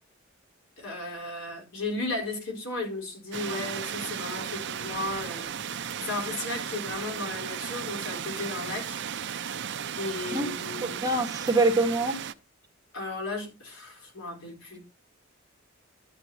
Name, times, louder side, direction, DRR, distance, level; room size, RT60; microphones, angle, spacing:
voice 1, 0.8-9.0 9.3-9.6 10.0-11.0 12.9-14.8, left 2 dB, 85° left, 4.5 m, -35 dB
sound 1, 3.3-12.3, right 8 dB, 60° right, 0.6 m, -35 dB
voice 2, 10.8-12.2, right 2 dB, 20° right, 1.6 m, -25 dB
12.5 x 9.0 x 2.9 m
head